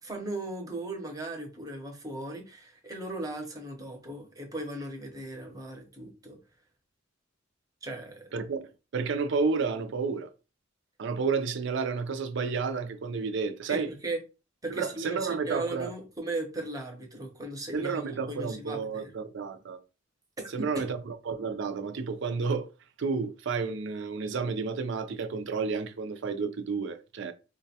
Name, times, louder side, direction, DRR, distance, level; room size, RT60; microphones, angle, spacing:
voice 1, 0.0-6.4 7.8-8.2 13.7-14.2 14.6-19.1 20.4-20.8, right 2 dB, 20° right, 0.7 m, -37 dB
voice 2, 8.9-10.3 11.0-13.9 14.7-15.9 17.7-19.8 20.5-22.7 23.0-27.3, right 5 dB, 65° right, 0.4 m, -31 dB
3.9 x 2.2 x 2.7 m
head